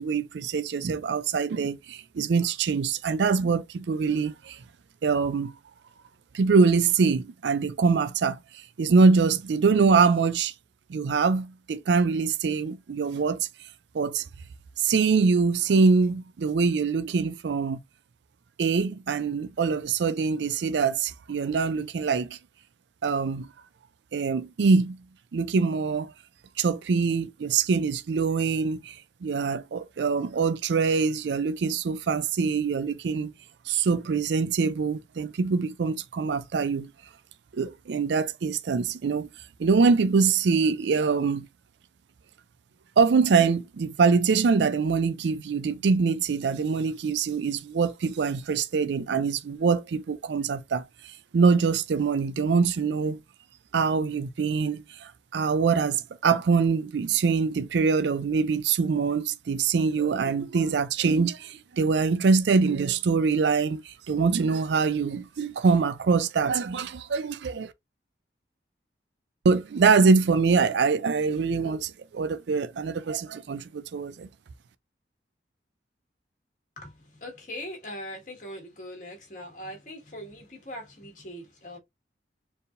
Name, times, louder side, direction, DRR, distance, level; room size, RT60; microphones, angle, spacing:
voice 1, 0.0-4.6 5.0-5.5 6.3-10.5 10.9-13.5 13.9-14.2 14.8-17.8 18.6-22.4 23.0-23.5 24.1-25.0 25.3-26.1 26.6-33.3 33.7-36.9 37.5-39.3 39.6-41.5 43.0-53.2 53.7-67.7 69.4-74.3, right 5 dB, 80° right, 0.4 m, -24 dB
voice 2, 76.8-81.8, left 1 dB, 45° left, 1.7 m, -41 dB
4.3 x 3.4 x 2.5 m
head